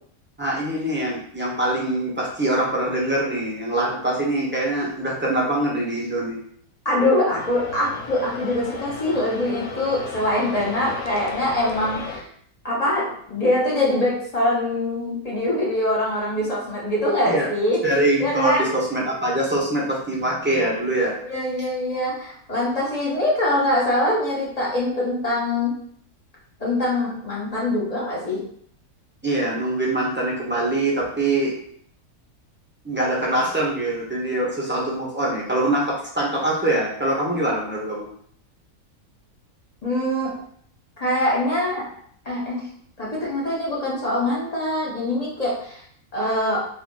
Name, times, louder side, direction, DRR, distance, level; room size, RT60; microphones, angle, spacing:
voice 1, 0.4-6.4 17.2-17.5 17.8-21.1 29.2-31.6 32.8-38.1, right 1 dB, 10° right, -5 dB, 0.6 m, -23 dB
voice 2, 6.8-12.2 12.6-17.8 18.2-18.7 21.3-25.7 26.6-28.4 39.8-40.3 41.0-41.8 42.2-42.6 43.0-45.8 46.1-46.6, left 1 dB, 30° left, -5 dB, 1.0 m, -23 dB
sound 1, 7.4-12.2, left 4 dB, 70° left, 1.0 m, -35 dB
2.9 x 2.5 x 3.8 m, 0.62 s
omnidirectional pair, 1.6 m